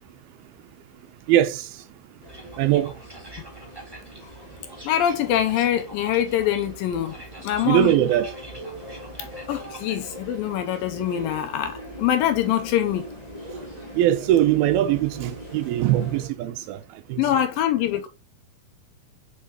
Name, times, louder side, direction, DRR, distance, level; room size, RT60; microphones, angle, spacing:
voice 1, 1.3-1.7 2.6-2.9 7.6-8.3 13.9-16.8 17.1-17.2, right 13 dB, 80° right, 2.5 m, -21 dB
sound 1, 2.2-16.3, equal, 15° left, 1.4 m, -41 dB
sound 2, 2.3-10.1, right 1 dB, 35° right, 0.3 m, -46 dB
voice 2, 4.8-7.2 7.4-8.0 9.5-13.1 17.2-18.1, left 11 dB, 80° left, 2.3 m, -24 dB
6.2 x 5.5 x 2.9 m
omnidirectional pair, 4.4 m